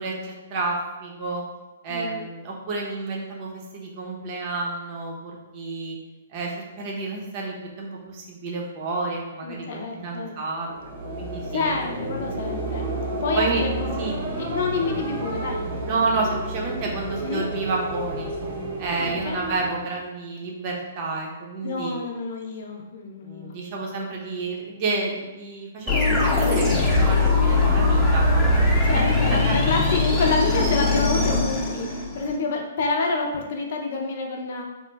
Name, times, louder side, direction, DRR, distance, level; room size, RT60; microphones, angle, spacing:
voice 1, 0.0-1.4 1.8-6.0 6.3-11.7 13.3-13.6 14.0-14.2 15.8-18.3 18.8-21.9 23.2-29.8, right 3 dB, 40° right, -1 dB, 0.7 m, -30 dB
voice 2, 1.9-2.3 9.4-10.4 11.5-12.9 13.2-15.9 17.2-17.5 19.0-19.4 21.6-23.5 28.8-34.6, left 4 dB, 60° left, 1 dB, 0.6 m, -28 dB
sound 1, 10.6-20.0, right 2 dB, 80° right, 1.1 m, -31 dB
sound 2, 25.9-32.3, left 3 dB, 10° left, 0.8 m, -20 dB
3.0 x 2.2 x 3.4 m, 1.1 s
hypercardioid pair, 140°, 0 cm